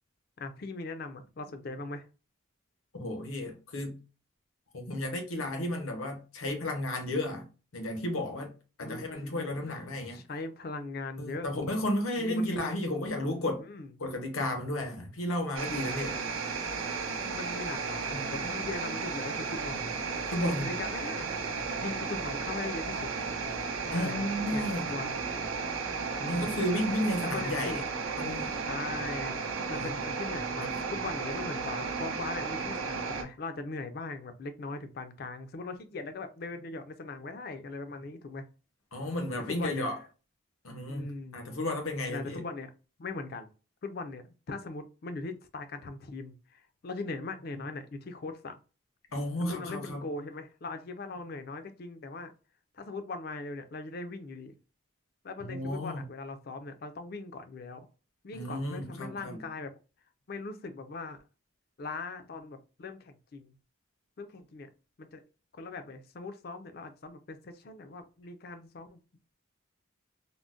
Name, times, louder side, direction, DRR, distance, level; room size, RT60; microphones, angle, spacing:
voice 1, 0.4-2.1 8.8-9.8 10.1-11.5 12.2-12.7 13.6-13.9 17.2-19.9 20.4-21.3 21.8-23.1 23.8-25.2 26.2-26.6 27.2-27.8 28.5-29.4 29.7-38.4 39.5-39.9 40.9-41.5 42.1-42.7 43.0-43.5 43.8-48.6 49.4-52.3 52.7-54.5 55.2-57.9 58.2-59.7 60.3-61.2 61.8-63.5 64.2-64.7 65.0-65.2 65.5-69.0, left 3 dB, 45° left, 0.4 m, -40 dB
voice 2, 2.9-4.0 4.7-7.5 7.7-10.2 11.2-13.7 14.0-16.2 18.1-18.3 20.3-20.7 23.9-24.9 26.3-27.8 28.2-28.5 29.7-30.0 30.6-30.7 38.9-40.0 40.6-42.4 49.1-50.0 55.4-56.0 58.3-59.4, left 1 dB, 85° left, 0.8 m, -33 dB
sound 1, 15.6-33.2, right 4 dB, 85° right, 0.6 m, -34 dB
3.7 x 2.1 x 2.4 m
head